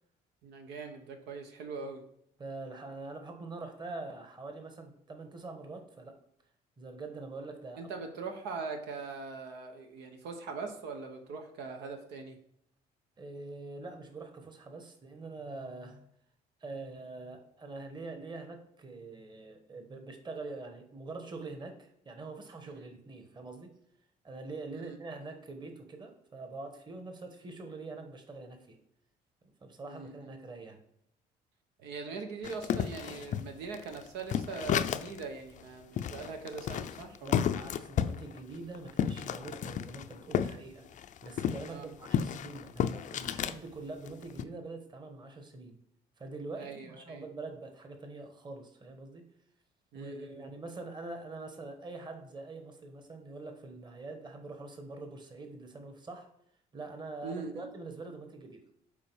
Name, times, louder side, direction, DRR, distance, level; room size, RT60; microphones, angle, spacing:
voice 1, 0.4-2.0 7.8-12.4 22.6-22.9 24.7-25.0 29.8-30.4 31.8-37.6 41.7-41.9 46.6-47.2 49.9-50.5 57.2-57.7, right 4 dB, 85° right, 5 dB, 1.1 m, -42 dB
voice 2, 2.4-6.1 6.8-7.9 13.2-16.1 16.6-23.7 24.2-28.8 29.6-30.8 37.2-45.8 46.2-49.2 49.9-56.3 56.7-58.6, right 3 dB, 25° right, 5 dB, 1.3 m, -44 dB
sound 1, 32.4-35.2 35.6-35.7 36.0-40.6 40.9-43.6 44.1-44.4, left 9 dB, 50° left, 0.4 m, -32 dB
7.4 x 4.4 x 4.6 m, 0.71 s
cardioid pair, 110°, 17 cm